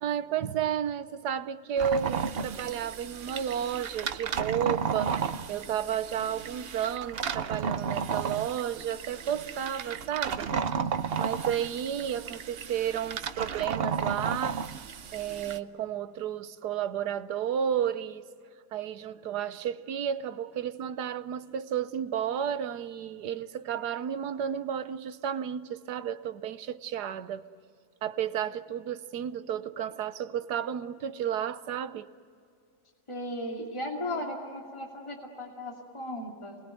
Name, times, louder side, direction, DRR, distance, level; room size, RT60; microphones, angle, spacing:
voice 1, 0.0-10.6 11.2-14.7 15.1-18.2 18.7-27.4 28.0-32.1, right 9 dB, 80° right, 1.4 m, -32 dB
sound 1, 1.8-15.6, right 6 dB, 50° right, 0.8 m, -33 dB
voice 2, 33.1-36.6, left 1 dB, 15° left, 2.7 m, -36 dB
28.5 x 20.5 x 9.2 m
omnidirectional pair, 1.7 m